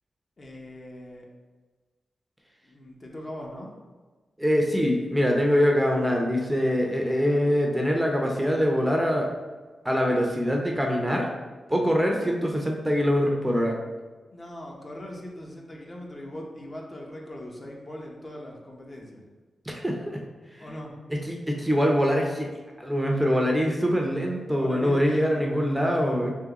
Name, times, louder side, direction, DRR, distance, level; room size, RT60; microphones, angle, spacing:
voice 1, 0.4-1.3 2.6-3.7 14.3-19.2 20.6-21.0 24.6-26.3, left 1 dB, 40° left, -1 dB, 0.8 m, -40 dB
voice 2, 4.4-9.3 9.8-11.3 11.7-13.8 19.7-20.2 20.5-20.7 21.1-22.5 22.8-26.3, equal, 10° right, 0 dB, 0.6 m, -24 dB
3.6 x 3.3 x 2.9 m, 1.3 s
cardioid pair, 65°, 0 cm